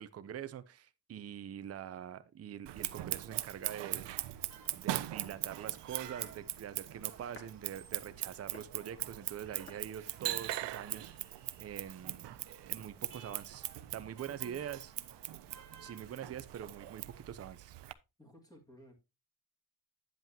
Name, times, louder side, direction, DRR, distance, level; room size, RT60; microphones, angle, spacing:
voice 1, 0.0-4.3 4.8-11.3 11.6-13.6 13.9-14.9 15.8-17.8, right 9 dB, 35° right, 0.5 m, -44 dB
Scissors, 2.7-17.9, right 14 dB, 90° right, 0.6 m, -41 dB
sound 1, 4.3-17.3, right 7 dB, 55° right, 1.2 m, -58 dB
sound 2, 5.5-11.5, left 2 dB, 30° left, 1.7 m, -62 dB
voice 2, 14.3-14.7 18.2-18.9, equal, 10° left, 1.8 m, -57 dB
9.1 x 8.0 x 2.7 m
wide cardioid pair, 165°, 41 cm